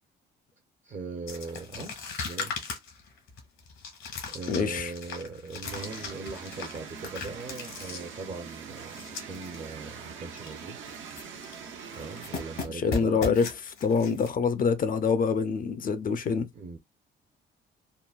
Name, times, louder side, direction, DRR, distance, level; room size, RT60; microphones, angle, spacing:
voice 1, 0.8-1.9 2.2-2.6 4.3-11.1 11.9-13.2 16.5-16.8, right 4 dB, 40° right, 0.6 m, -40 dB
sound 1, 1.3-9.6 9.9-10.0 10.3-10.6 10.9-11.7 11.9-14.3, left 4 dB, 85° left, 1.4 m, -38 dB
voice 2, 4.5-4.9 12.7-13.5 13.8-16.5, left 5 dB, 45° left, 0.5 m, -25 dB
sound 2, 5.6-12.7, right 6 dB, 75° right, 0.7 m, -43 dB
3.7 x 2.1 x 2.3 m
cardioid pair, 90°, 20 cm